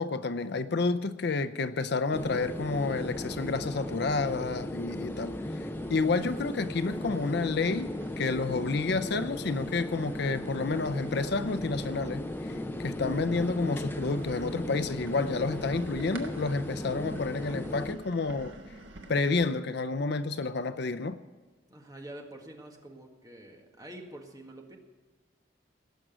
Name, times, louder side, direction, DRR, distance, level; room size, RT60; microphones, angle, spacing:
voice 1, 0.0-7.9 8.2-18.5 19.1-21.2, left 3 dB, 60° left, 0.6 m, -30 dB
sound 1, 2.1-18.0, left 1 dB, 10° left, 0.6 m, -37 dB
sound 2, 4.9-19.5, right 2 dB, 80° right, 1.5 m, -52 dB
voice 2, 21.6-24.8, right 1 dB, 20° right, 1.7 m, -46 dB
18.0 x 6.2 x 9.1 m
head